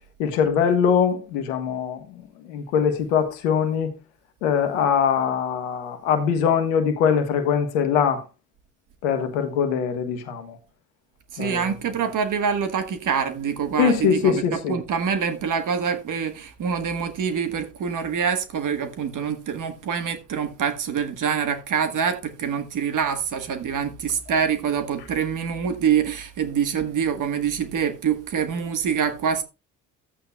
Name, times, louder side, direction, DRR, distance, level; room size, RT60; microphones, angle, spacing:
voice 1, 0.2-3.9 4.4-8.2 9.0-10.5 11.4-11.7 13.8-14.8, left 7 dB, 85° left, 1.3 m, -22 dB
voice 2, 11.3-29.4, right 7 dB, 50° right, 1.4 m, -25 dB
12.5 x 8.5 x 2.3 m
hypercardioid pair, 65°, 38 cm